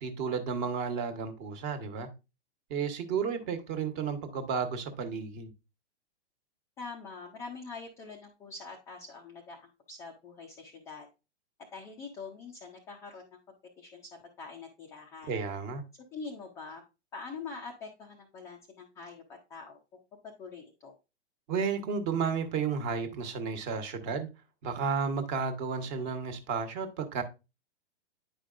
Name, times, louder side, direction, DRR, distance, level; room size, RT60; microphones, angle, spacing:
voice 1, 0.0-2.1 2.7-5.5 15.3-15.8 21.5-24.3 24.6-27.2, right 5 dB, 35° right, 1.2 m, -32 dB
voice 2, 6.8-11.1 11.7-15.3 16.1-16.8 17.1-21.0, left 4 dB, 10° left, 0.3 m, -45 dB
9.2 x 5.0 x 2.5 m
hypercardioid pair, 135°, 35 cm